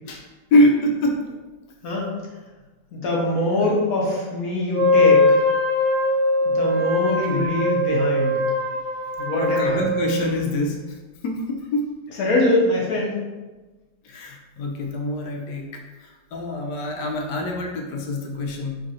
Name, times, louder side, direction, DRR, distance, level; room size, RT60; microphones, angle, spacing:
voice 1, 0.5-1.4 7.0-7.5 9.3-11.0 11.2-11.8 14.0-18.8, left 1 dB, 85° left, 1 dB, 1.2 m, -24 dB
voice 2, 2.9-5.4 6.4-8.4 9.2-9.8 12.2-13.1, left 2 dB, 65° left, -3 dB, 1.1 m, -23 dB
Wind instrument woodwind instrument, 4.7-10.3, left 1 dB, 80° right, 0.6 m, -21 dB
3.2 x 2.4 x 4.0 m, 1.2 s
omnidirectional pair, 1.8 m